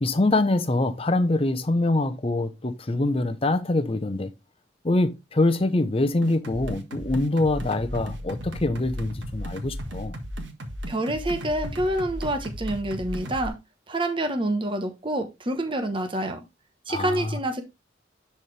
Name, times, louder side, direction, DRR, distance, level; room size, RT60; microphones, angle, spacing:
voice 1, 0.0-4.3 4.8-10.1 16.9-17.3, left 2 dB, 30° left, 0.7 m, -24 dB
sound 1, 6.2-13.5, equal, 80° right, 1.6 m, -35 dB
voice 2, 10.9-13.6 13.9-16.4 16.9-17.6, right 1 dB, 25° right, 1.0 m, -27 dB
10.5 x 4.4 x 3.3 m
head